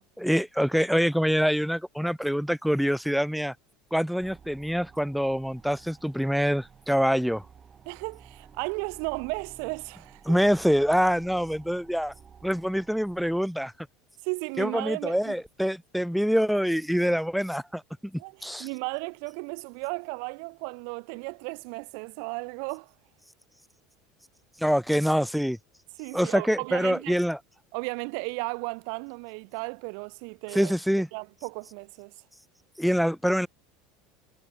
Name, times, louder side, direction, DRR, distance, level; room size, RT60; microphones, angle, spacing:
voice 1, 0.2-3.5 3.9-7.4 10.3-12.1 12.4-13.7 14.6-18.7 24.6-25.6 26.1-27.4 30.5-31.1 32.8-33.5, equal, ahead, 0.9 m, -25 dB
sound 1, 4.2-13.4, right 6 dB, 30° right, 5.6 m, -52 dB
voice 2, 7.9-10.4 14.2-15.3 18.2-22.9 26.0-27.2 27.7-30.7 31.1-32.1, right 40 dB or more, 65° right, 0.5 m, -35 dB
hypercardioid pair, 80°, 0 cm